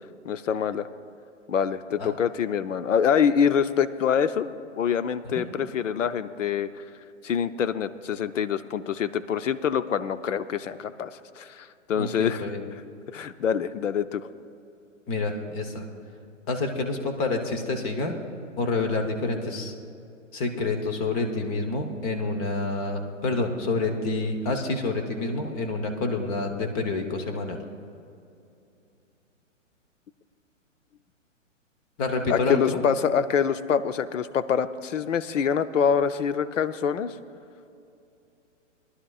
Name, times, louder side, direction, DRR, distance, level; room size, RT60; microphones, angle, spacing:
voice 1, 0.2-0.9 1.5-6.7 7.2-12.4 13.1-14.3 32.3-37.1, left 7 dB, 75° left, 13 dB, 0.6 m, -25 dB
voice 2, 12.0-12.6 15.1-15.9 16.5-18.2 18.6-19.7 20.3-27.6 32.0-32.8, left 3 dB, 30° left, 5 dB, 0.9 m, -28 dB
19.5 x 11.5 x 2.4 m, 2.6 s
figure-of-eight pair, 125°, 38 cm